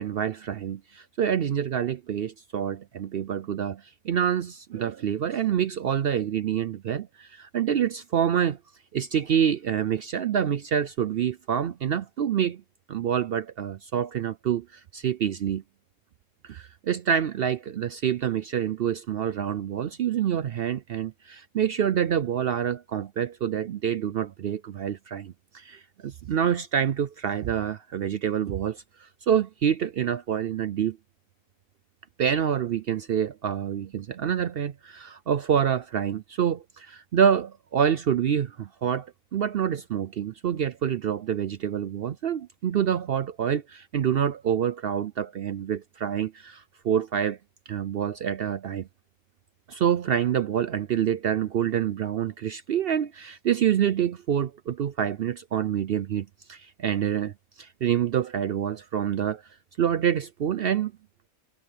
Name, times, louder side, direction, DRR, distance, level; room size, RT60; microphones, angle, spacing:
voice 1, 0.0-8.6 8.9-12.6 12.9-15.6 16.4-31.0 32.2-47.4 47.7-48.9 49.7-59.4 59.8-60.9, right 9 dB, 60° right, 0.6 m, -27 dB
omnidirectional pair, 1.5 m